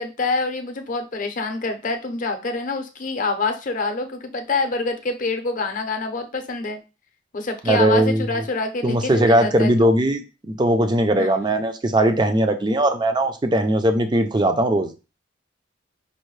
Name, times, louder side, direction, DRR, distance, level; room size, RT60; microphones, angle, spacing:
voice 1, 0.0-6.8 7.3-9.9 11.2-11.4, left 3 dB, 45° left, 6 dB, 0.6 m, -26 dB
voice 2, 7.6-8.2 8.8-14.9, right 1 dB, 25° right, 7 dB, 0.4 m, -19 dB
5.3 x 2.2 x 3.1 m, 0.30 s
head